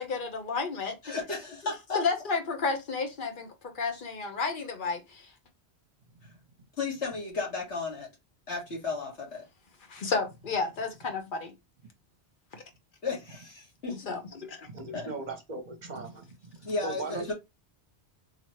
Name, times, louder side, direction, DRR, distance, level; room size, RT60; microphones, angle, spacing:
voice 1, 0.0-1.0 1.9-3.5 3.7-5.3 9.9-11.5 12.5-12.6 13.9-14.7, left 4 dB, 50° left, 1.1 m, -32 dB
voice 2, 1.0-2.0 3.9-4.0 6.8-8.1 8.5-9.4 13.0-14.1 14.9-15.1 16.7-17.3, left 4 dB, 85° left, 2.1 m, -34 dB
voice 3, 14.6-17.3, right 3 dB, 45° right, 0.9 m, -39 dB
4.0 x 3.0 x 3.1 m
omnidirectional pair, 1.1 m